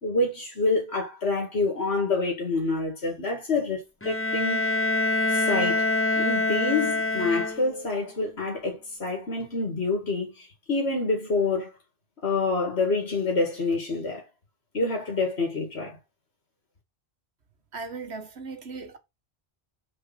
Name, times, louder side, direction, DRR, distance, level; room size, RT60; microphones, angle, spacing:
voice 1, 0.0-4.6 5.3-11.7 12.2-14.2 14.7-16.0, left 3 dB, 85° left, 2.2 m, -27 dB
Bowed string instrument, 4.0-8.0, left 2 dB, 15° left, 0.8 m, -25 dB
voice 2, 17.7-19.0, right 4 dB, 85° right, 1.7 m, -37 dB
6.7 x 4.7 x 5.8 m
omnidirectional pair, 1.1 m